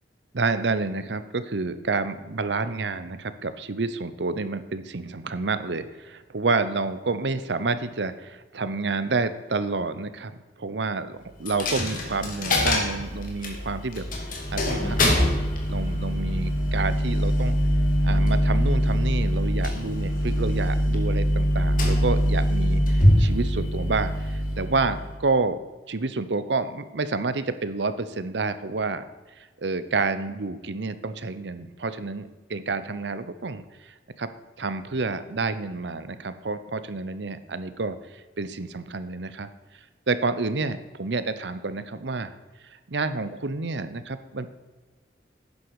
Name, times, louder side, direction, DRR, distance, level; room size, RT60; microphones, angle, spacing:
voice 1, 0.3-10.3 10.6-14.1 14.5-17.5 18.0-25.6 25.9-29.0 29.4-39.5 40.1-42.3 42.9-44.5, right 3 dB, 75° right, 12 dB, 0.8 m, -29 dB
Coin (dropping), 11.5-25.2, equal, 50° left, 2.5 m, -23 dB
11.5 x 9.5 x 4.8 m, 1.3 s
head